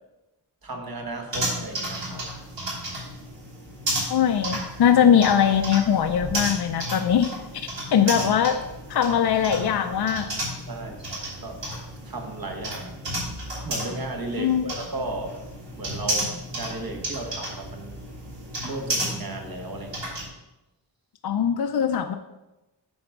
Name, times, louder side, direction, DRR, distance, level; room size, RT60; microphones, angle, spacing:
voice 1, 0.6-2.3 10.7-11.7 12.0-13.0 13.6-15.4 15.8-18.1 18.6-20.2, right 2 dB, 55° right, 2 dB, 1.4 m, -35 dB
sound 1, 1.3-20.3, right 1 dB, 85° right, 3.0 m, -33 dB
voice 2, 4.1-8.6 8.9-10.3 14.4-14.7 21.2-22.1, left 8 dB, 65° left, 7 dB, 0.6 m, -21 dB
8.7 x 3.5 x 6.0 m, 1.0 s
wide cardioid pair, 95°, 43 cm